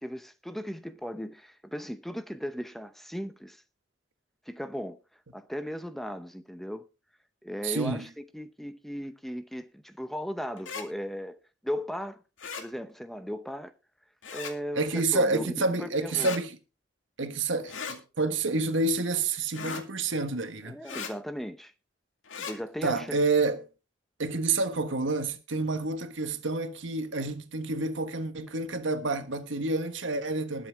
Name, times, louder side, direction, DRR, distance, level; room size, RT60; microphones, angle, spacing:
voice 1, 0.0-3.6 4.5-5.0 5.3-6.8 7.4-11.4 11.6-12.2 12.6-13.7 14.3-16.4 20.6-21.7 22.4-23.2, equal, ahead, 0.7 m, -37 dB
voice 2, 7.6-8.0 14.7-16.6 17.2-20.7 22.8-23.6 24.2-30.7, right 3 dB, 80° right, 1.6 m, -28 dB
sound 1, 10.6-10.9 12.4-12.7 14.2-14.5 16.1-16.4 17.7-18.0 19.5-19.8 20.9-21.1 22.2-22.6, left 5 dB, 85° left, 2.2 m, -37 dB
20.5 x 7.5 x 3.5 m
head